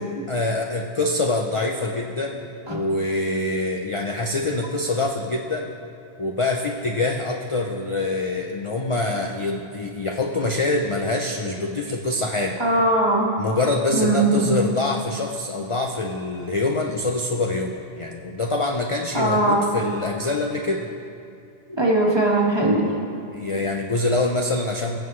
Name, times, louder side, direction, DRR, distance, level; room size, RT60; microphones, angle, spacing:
voice 1, 0.3-5.7 6.2-12.6 13.4-20.9 23.3-25.0, left 2 dB, 35° left, 1 dB, 0.5 m, -25 dB
voice 2, 12.6-13.3 13.9-14.5 19.1-19.7 21.7-22.9, right 2 dB, 25° right, -3 dB, 1.5 m, -20 dB
22.0 x 7.5 x 3.2 m, 2.5 s
omnidirectional pair, 1.2 m